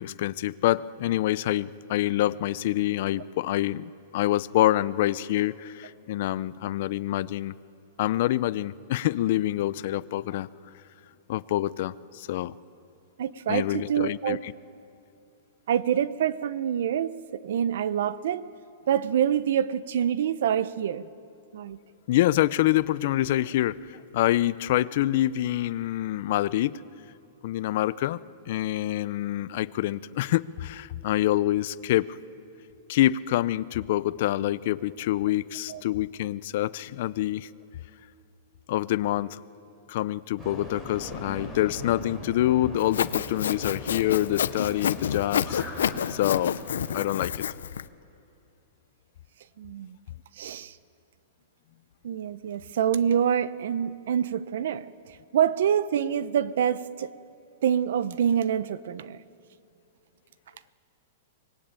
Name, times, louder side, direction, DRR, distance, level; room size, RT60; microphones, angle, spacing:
voice 1, 0.0-7.5 8.0-10.5 11.3-12.5 13.5-14.5 22.1-26.8 27.4-28.2 28.5-32.2 32.9-37.5 38.7-39.4 39.9-45.6 46.1-46.5 46.9-47.4, left 14 dB, 50° left, 17 dB, 0.6 m, -26 dB
voice 2, 13.2-14.4 15.7-18.5 18.9-21.1 21.5-21.8 35.7-35.8 49.6-50.0 50.4-50.8 52.0-57.1 57.6-59.2, right 9 dB, 65° right, 16 dB, 0.8 m, -26 dB
sound 1, 40.4-47.1, left 1 dB, 10° right, 3.7 m, -41 dB
Sawing, 42.8-47.8, left 8 dB, 90° left, 0.7 m, -29 dB
24.5 x 20.0 x 9.0 m, 2.6 s
hypercardioid pair, 160°, 0 cm